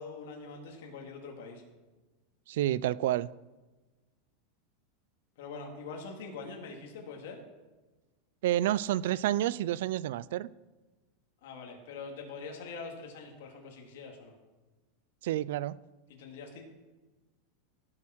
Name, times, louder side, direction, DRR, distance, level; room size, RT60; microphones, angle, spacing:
voice 1, 0.0-1.6 5.4-7.4 11.4-14.3 16.1-16.6, left 4 dB, 70° left, 0 dB, 2.7 m, -44 dB
voice 2, 2.5-3.3 8.4-10.5 15.2-15.8, right 13 dB, 65° right, 20 dB, 0.4 m, -29 dB
17.5 x 7.2 x 4.6 m, 1.2 s
supercardioid pair, 165°, 0 cm